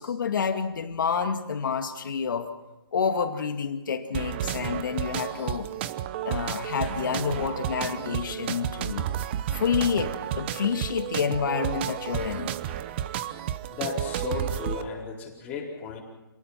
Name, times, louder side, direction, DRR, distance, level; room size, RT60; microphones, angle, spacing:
voice 1, 0.0-2.5 2.9-5.7 6.2-9.1 9.5-12.5, left 6 dB, 55° left, 7 dB, 2.2 m, -28 dB
sound 1, 4.1-14.8, right 11 dB, 25° right, 0.9 m, -32 dB
voice 2, 13.7-16.0, left 5 dB, 15° left, -5 dB, 4.6 m, -34 dB
27.5 x 19.0 x 5.9 m, 1.0 s
hypercardioid pair, 150°, 13 cm